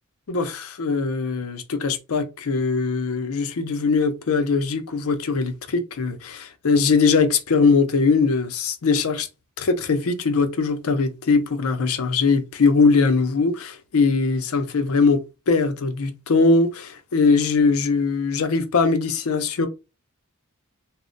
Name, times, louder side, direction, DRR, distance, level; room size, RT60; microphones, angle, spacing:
voice 1, 0.3-9.3 9.6-19.7, left 4 dB, 70° left, 0.5 m, -21 dB
2.1 x 2.1 x 3.7 m
head